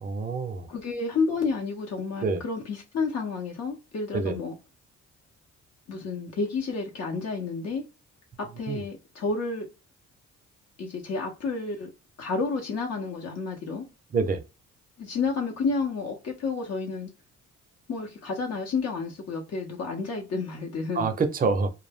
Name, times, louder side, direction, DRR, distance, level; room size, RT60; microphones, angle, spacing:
voice 1, 0.0-0.7 2.2-2.4 4.1-4.4 8.7-8.8 14.1-14.4 21.0-21.7, right 4 dB, 30° right, 0.5 m, -26 dB
voice 2, 0.7-4.6 5.9-7.8 8.4-9.7 10.8-11.9 12.2-13.9 15.0-17.1 17.9-21.1, left 4 dB, 55° left, 0.7 m, -30 dB
2.2 x 2.0 x 3.3 m
cardioid pair, 90°, 30 cm